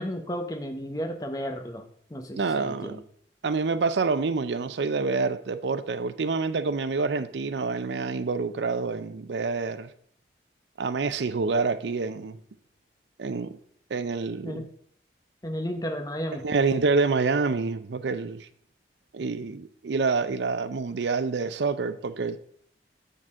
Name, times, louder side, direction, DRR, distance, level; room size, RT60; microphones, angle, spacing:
voice 1, 0.0-1.8 2.1-3.0 14.4-14.7 15.4-16.5, equal, 20° left, 0.8 m, -33 dB
voice 2, 2.3-3.0 3.4-9.9 10.8-12.4 13.2-13.6 13.9-14.7 16.4-18.5 19.1-22.4, right 4 dB, 80° right, 0.5 m, -27 dB
7.7 x 6.6 x 3.6 m
head